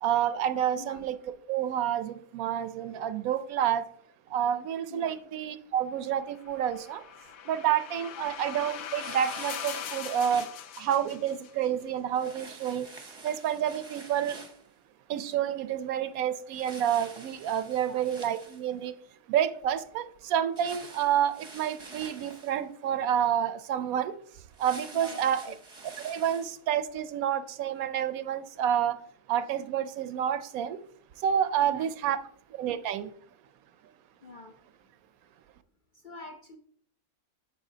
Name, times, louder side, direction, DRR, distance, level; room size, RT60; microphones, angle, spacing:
voice 1, 0.0-1.2 1.5-3.8 4.3-7.0 7.4-10.5 10.8-12.9 13.2-14.4 15.1-18.9 19.3-24.2 24.6-25.4 26.0-29.0 29.3-30.8 31.2-32.2 32.5-33.1, right 9 dB, 75° right, 12 dB, 1.0 m, -29 dB
sound 1, 6.4-11.7, left 10 dB, 75° left, 1.0 m, -41 dB
sound 2, 9.0-10.5 12.1-14.7 16.5-18.8 20.6-22.6 24.5-26.5, right 3 dB, 25° right, 0.8 m, -47 dB
voice 2, 31.6-32.2 34.2-34.5 36.0-36.6, left 3 dB, 50° left, 2 dB, 0.6 m, -45 dB
8.9 x 6.8 x 2.7 m, 0.62 s
omnidirectional pair, 1.5 m